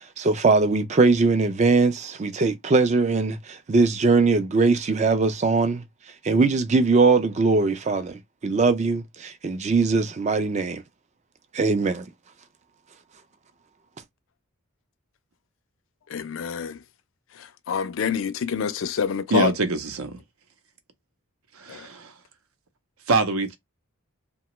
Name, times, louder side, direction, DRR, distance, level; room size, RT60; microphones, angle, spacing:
voice 1, 0.2-5.8 6.2-10.8 11.5-12.0, right 3 dB, 30° right, 0.4 m, -21 dB
voice 2, 16.1-16.8 17.4-19.5 21.7-21.9, left 7 dB, 60° left, 0.4 m, -27 dB
voice 3, 19.3-20.2 21.6-22.1 23.1-23.6, right 3 dB, 75° right, 0.6 m, -24 dB
2.8 x 2.2 x 3.0 m
head